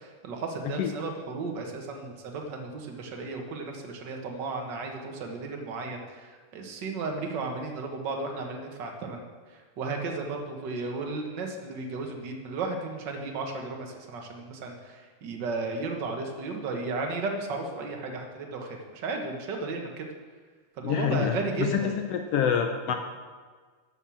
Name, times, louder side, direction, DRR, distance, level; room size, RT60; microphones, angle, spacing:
voice 1, 0.0-9.2 9.5-20.1 20.8-22.0, right 3 dB, 50° right, 2 dB, 1.5 m, -34 dB
voice 2, 20.8-21.8 22.1-22.9, left 8 dB, 70° left, 4 dB, 1.5 m, -27 dB
12.0 x 6.4 x 7.1 m, 1.5 s
omnidirectional pair, 3.4 m